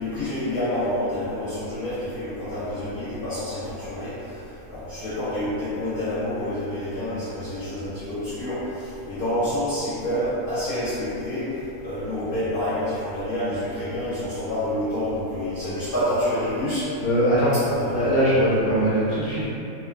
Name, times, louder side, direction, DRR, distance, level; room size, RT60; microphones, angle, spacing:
voice 1, 0.0-4.3 4.7-11.5 11.8-16.9 17.7-18.2, left 1 dB, 50° left, -14 dB, 0.7 m, -28 dB
voice 2, 17.0-17.5 17.9-19.5, equal, 90° left, -11 dB, 1.4 m, -21 dB
3.1 x 2.2 x 2.3 m, 2.9 s
omnidirectional pair, 1.5 m